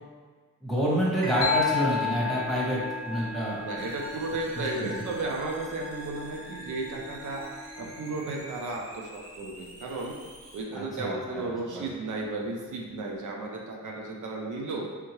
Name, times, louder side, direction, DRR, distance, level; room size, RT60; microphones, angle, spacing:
voice 1, 0.6-3.6 4.5-5.1 10.7-11.8, right 1 dB, ahead, -7 dB, 1.2 m, -28 dB
Musical instrument, 1.2-8.9, right 1 dB, 30° right, 0.9 m, -41 dB
sound 1, 1.4-5.1, left 9 dB, 55° left, 0.5 m, -32 dB
voice 2, 3.6-7.4 7.8-10.2 10.5-14.9, right 2 dB, 90° right, -1 dB, 0.6 m, -34 dB
sound 2, 3.8-10.6, right 1 dB, 50° right, 1.2 m, -48 dB
3.5 x 2.7 x 3.1 m, 1.5 s
wide cardioid pair, 90°, 30 cm